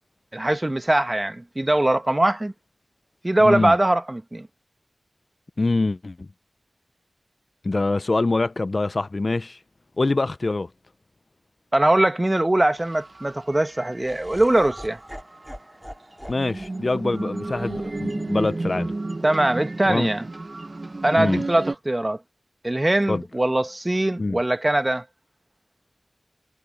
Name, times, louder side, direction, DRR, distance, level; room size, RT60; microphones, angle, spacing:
voice 1, 0.3-2.5 3.2-4.5 11.7-15.0 19.2-20.2 21.0-22.2 22.6-25.0, right 1 dB, 25° right, 1.4 m, -21 dB
voice 2, 3.4-3.8 5.6-6.3 7.6-9.6 10.0-10.7 16.3-18.9 19.8-20.1 21.2-21.4 23.1-23.2 24.2-24.4, left 3 dB, 50° left, 0.5 m, -24 dB
sound 1, 12.8-14.2 14.5-15.5 16.3-21.8, right 2 dB, 50° right, 0.9 m, -32 dB
Laughter, 13.9-20.1, equal, ahead, 5.0 m, -44 dB
wide cardioid pair, 50°, 0 cm